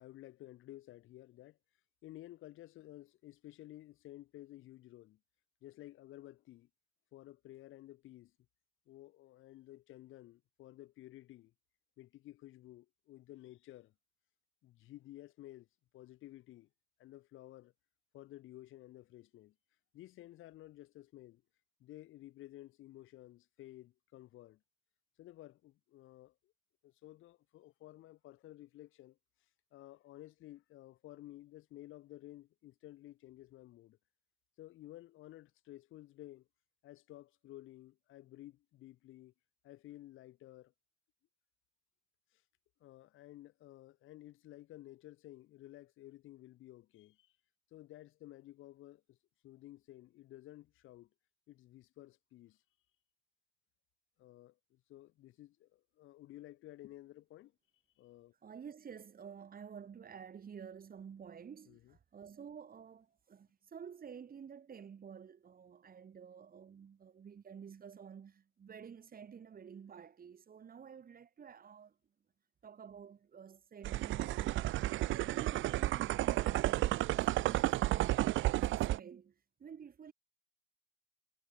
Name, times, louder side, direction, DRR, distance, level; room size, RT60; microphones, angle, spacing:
voice 1, 0.0-1.6 2.0-5.2 5.6-6.7 7.1-8.3 8.9-11.5 12.0-13.9 14.6-15.7 15.9-16.7 17.0-17.7 18.1-19.5 19.9-21.4 21.8-24.6 25.2-26.5 26.8-29.2 29.7-34.0 34.6-36.5 36.8-39.3 39.6-40.7 42.3-42.4 42.8-47.3 47.7-49.2 49.4-51.1 51.5-52.6 54.2-57.5 58.0-58.3 61.7-62.0 75.0-75.2, left 15 dB, 85° left, 2.9 m, -54 dB
voice 2, 58.4-72.0 72.6-74.8 75.2-78.2 78.5-80.1, right 7 dB, 50° right, 2.9 m, -51 dB
sound 1, 73.8-79.0, right 16 dB, 80° right, 0.5 m, -32 dB
cardioid pair, 90°, 20 cm